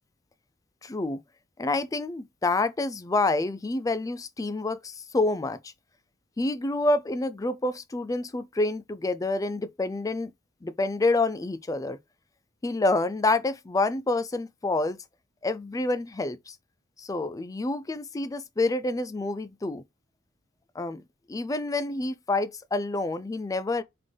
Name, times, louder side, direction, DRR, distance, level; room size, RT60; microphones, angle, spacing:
voice 1, 0.8-1.2 1.6-5.7 6.4-10.3 10.6-12.0 12.6-15.0 15.4-16.6 17.0-19.8 20.8-21.0 21.3-23.8, left 2 dB, 15° left, 0.3 m, -28 dB
3.7 x 3.7 x 3.3 m
head